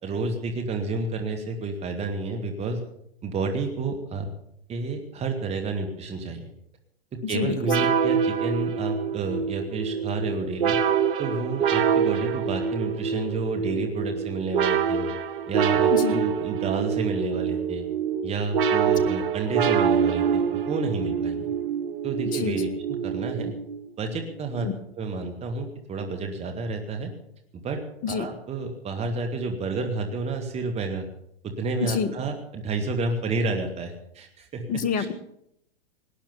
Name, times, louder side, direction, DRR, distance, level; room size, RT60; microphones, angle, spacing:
voice 1, 0.0-2.8 3.2-4.3 4.7-6.5 7.1-10.8 11.2-15.1 15.5-17.9 18.2-21.5 22.0-23.5 24.0-24.7 25.0-27.1 27.5-27.8 28.1-31.1 31.4-34.6 35.0-35.1, right 3 dB, 20° right, 4 dB, 2.3 m, -30 dB
voice 2, 7.2-7.8 15.9-16.2 22.2-22.6 24.6-24.7 28.0-28.3 31.8-32.1 34.7-35.1, left 6 dB, 25° left, 13 dB, 1.5 m, -27 dB
sound 1, 7.7-23.9, right 7 dB, 60° right, 1.5 m, -25 dB
sound 2, 9.7-21.0, right 5 dB, 40° right, 3.8 m, -47 dB
19.0 x 10.5 x 7.1 m, 0.75 s
hypercardioid pair, 110°, 30 cm